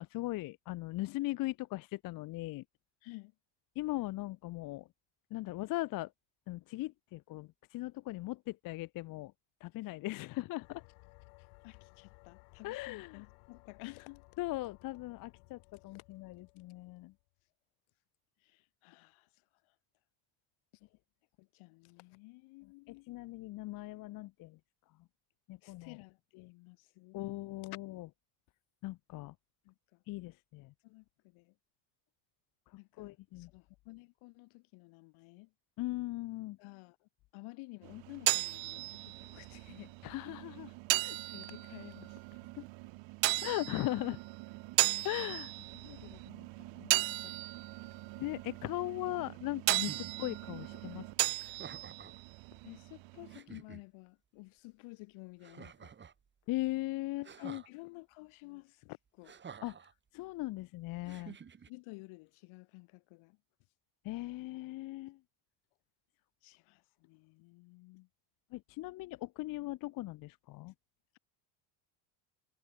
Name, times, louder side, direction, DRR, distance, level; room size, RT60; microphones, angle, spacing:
voice 1, 0.0-2.6 3.8-4.9 5.3-6.1 6.5-9.3 9.6-10.8 12.6-13.2 14.4-17.1 23.1-24.6 25.5-25.9 27.1-28.1 28.8-29.3 30.1-30.7 33.0-33.5 35.8-36.6 40.0-40.7 42.6-42.7 43.4-44.2 45.0-45.5 48.2-51.0 56.5-57.6 59.6-59.7 60.1-61.4 64.0-65.2 68.5-70.7, left 18 dB, 45° left, 0.6 m, -39 dB
voice 2, 3.0-3.3 11.6-14.2 15.9-16.0 18.4-19.3 20.8-20.9 21.4-23.1 25.6-27.2 27.7-27.8 29.6-30.0 30.8-31.5 32.8-35.5 36.6-40.0 41.0-42.4 43.3-43.5 44.8-45.4 45.7-47.7 50.7-50.8 52.6-55.9 57.3-59.4 61.0-61.3 61.7-63.4 66.4-68.1, left 25 dB, 70° left, 2.3 m, -53 dB
sound 1, 10.6-17.2, left 40 dB or more, 90° left, 3.9 m, -60 dB
sound 2, 37.8-53.4, right 22 dB, 60° right, 1.4 m, -36 dB
sound 3, 49.9-50.1 51.4-52.2 52.9-53.0 53.3-53.8 55.4-56.2 57.2-57.7 59.2-59.9 61.1-61.7, right 7 dB, 20° right, 2.2 m, -50 dB
cardioid pair, 150°, 50 cm